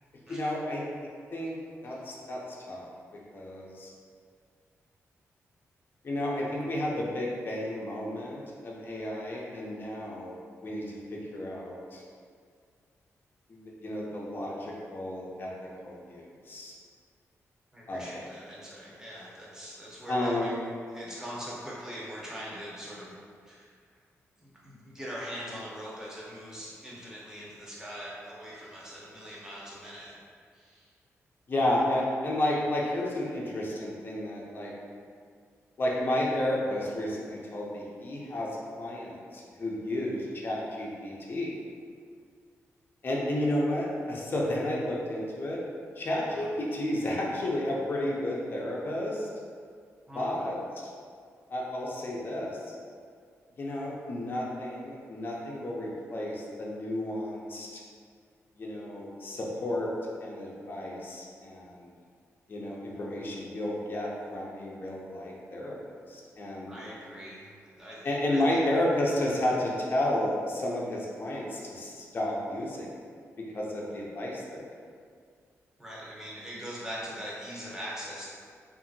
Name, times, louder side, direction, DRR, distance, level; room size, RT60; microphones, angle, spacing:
voice 1, 0.3-1.6 1.8-3.9 6.0-10.4 10.6-12.0 13.5-16.7 17.9-18.3 20.1-20.5 31.5-34.7 35.8-41.5 43.0-45.6 46.0-49.3 50.1-50.6 51.5-52.8 53.6-57.8 58.6-59.9 60.2-61.9 62.5-66.7 68.0-72.9 73.4-74.8, left 1 dB, 40° left, -3 dB, 0.5 m, -32 dB
voice 2, 17.7-23.2 23.5-23.7 24.4-30.1 30.5-30.9 46.3-46.4 50.1-50.4 66.7-68.6 75.8-78.3, equal, 10° right, -6 dB, 0.7 m, -42 dB
2.7 x 2.5 x 2.6 m, 2.1 s
cardioid pair, 110°, 5 cm